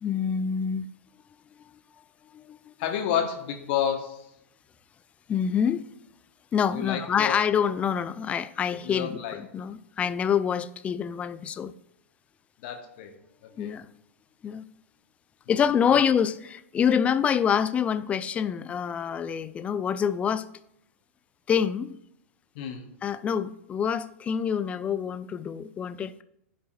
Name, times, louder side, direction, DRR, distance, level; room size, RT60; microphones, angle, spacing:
voice 1, 0.0-0.9 2.3-2.7 5.3-5.8 6.5-11.7 13.6-13.9 14.4-14.6 15.5-20.5 21.5-21.9 23.0-26.2, left 7 dB, 15° left, 0.4 m, -26 dB
voice 2, 2.8-4.3 6.7-7.4 8.8-9.4 12.6-13.1 13.4-13.7 22.5-22.9, left 9 dB, 45° left, 1.4 m, -30 dB
14.5 x 5.5 x 2.6 m
figure-of-eight pair, 100°, 8 cm